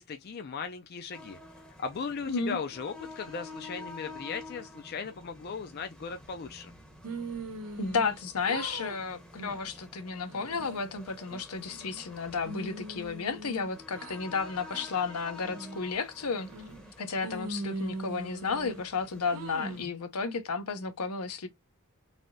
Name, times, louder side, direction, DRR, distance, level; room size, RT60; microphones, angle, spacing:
voice 1, 0.0-1.4 1.8-6.7, left 5 dB, 45° left, 0.4 m, -37 dB
sound 1, 1.1-19.9, left 2 dB, 5° left, 0.7 m, -50 dB
voice 2, 2.3-2.6 7.8-16.5 17.0-21.5, left 4 dB, 85° left, 0.7 m, -32 dB
sound 2, 7.0-8.2 8.4-9.0 9.4-9.7 10.2-10.8 11.3-12.0 12.4-14.2 14.7-14.9 15.4-15.9 16.4-16.9 17.2-18.8 19.3-19.9, right 2 dB, 80° right, 0.8 m, -40 dB
3.3 x 2.7 x 2.6 m
head